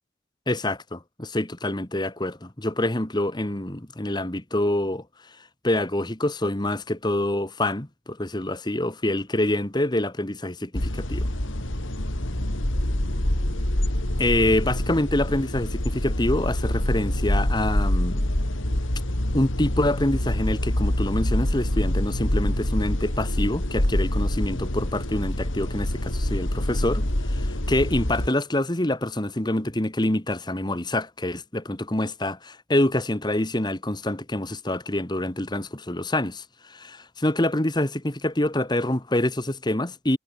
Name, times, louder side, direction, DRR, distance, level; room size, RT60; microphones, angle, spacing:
voice 1, 0.5-5.0 5.6-11.3 14.2-18.3 19.3-40.2, left 1 dB, 20° left, 1.6 m, -26 dB
sound 1, 10.7-28.3, left 1 dB, 80° left, 3.5 m, -26 dB
head